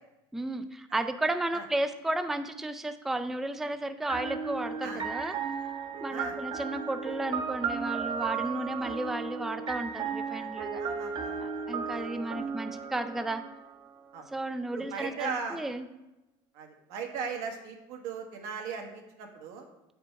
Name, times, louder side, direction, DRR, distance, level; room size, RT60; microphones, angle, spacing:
voice 1, 0.3-5.3 6.0-10.8 11.4-13.4 14.3-15.9, right 1 dB, 5° right, 9 dB, 0.3 m, -33 dB
sound 1, 4.1-13.9, right 6 dB, 40° right, 0.8 m, -35 dB
voice 2, 10.8-11.4 11.9-12.0 14.1-14.3 14.7-15.6 16.5-19.7, right 5 dB, 80° right, 3 dB, 1.3 m, -38 dB
7.6 x 5.2 x 4.5 m, 0.96 s
cardioid pair, 130°, 12 cm